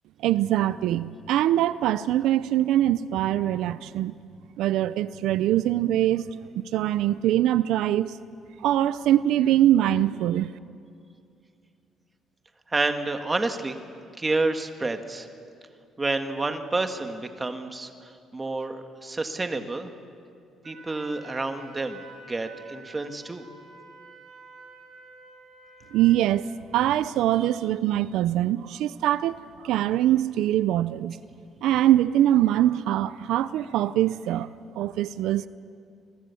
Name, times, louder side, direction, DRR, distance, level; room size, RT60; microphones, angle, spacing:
voice 1, 0.2-4.1 4.6-6.3 6.6-8.2 8.6-10.5 25.9-26.5 26.7-31.2 31.6-34.5 34.7-35.5, right 12 dB, 90° right, 0.5 m, -23 dB
voice 2, 12.7-13.8 14.2-15.3 16.0-19.9 20.6-23.4, right 3 dB, 20° right, 1.7 m, -29 dB
Wind instrument woodwind instrument, 20.6-26.4, right 3 dB, 70° right, 6.3 m, -48 dB
28.0 x 22.0 x 7.1 m
cardioid pair, 125°, 0 cm